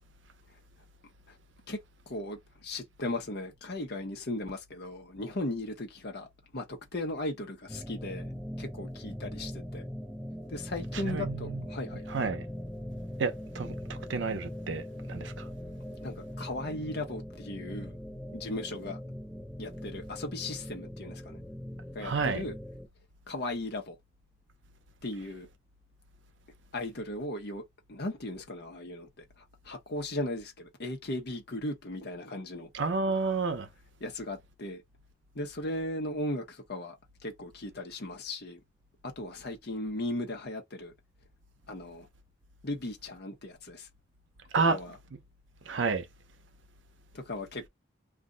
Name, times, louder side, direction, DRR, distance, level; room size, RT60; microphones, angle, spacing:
voice 1, 2.1-6.3 6.5-8.3 8.6-9.8 10.5-12.0 16.0-17.9 18.3-19.0 19.6-21.4 21.9-22.5 23.3-23.9 25.0-25.5 26.7-27.6 27.9-29.1 29.7-32.7 34.0-34.8 35.3-37.0 37.2-38.6 39.0-40.9 41.7-42.1 42.6-43.9 44.7-44.9 47.1-47.7, left 1 dB, 60° left, 0.9 m, -37 dB
sound 1, 7.7-22.9, equal, ahead, 0.5 m, -41 dB
voice 2, 10.9-11.7 12.1-12.5 13.2-15.5 22.0-22.4 32.7-33.7 44.5-44.8 45.7-46.1, right 4 dB, 80° right, 0.6 m, -30 dB
2.5 x 2.1 x 3.8 m
head